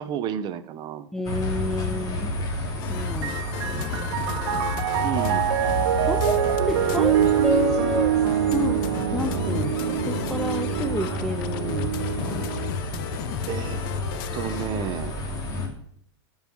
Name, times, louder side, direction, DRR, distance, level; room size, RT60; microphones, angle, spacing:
voice 1, 0.0-1.1 5.0-5.4 13.5-13.8 14.3-15.2, right 9 dB, 30° right, 13 dB, 0.8 m, -31 dB
voice 2, 1.1-2.4 2.9-4.1 6.1-8.2 8.5-8.9 9.1-12.5, left 2 dB, 5° left, 5 dB, 0.5 m, -30 dB
sound 1, 1.2-15.7, left 2 dB, 25° left, 2.7 m, -30 dB
sound 2, 2.8-7.7 8.3-14.7, left 13 dB, 50° left, 0.6 m, -37 dB
Piano, 3.1-12.7, right 10 dB, 65° right, 1.1 m, -25 dB
14.0 x 5.7 x 6.1 m, 0.66 s
hypercardioid pair, 140°, 14 cm